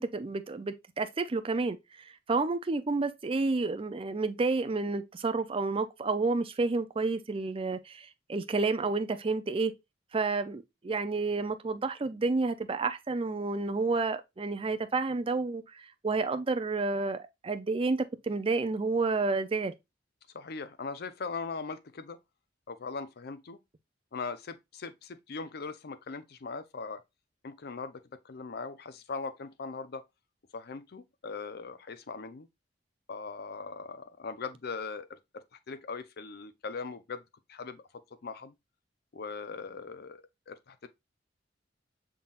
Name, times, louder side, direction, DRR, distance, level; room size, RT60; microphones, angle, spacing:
voice 1, 0.0-9.7 10.1-19.7, right 3 dB, 30° right, 0.5 m, -30 dB
voice 2, 20.3-22.2 22.7-23.6 24.1-27.0 27.4-30.0 30.5-32.5 33.1-37.2 37.5-37.8 38.2-38.5 39.1-40.9, left 4 dB, 60° left, 0.6 m, -40 dB
5.7 x 3.7 x 2.4 m
head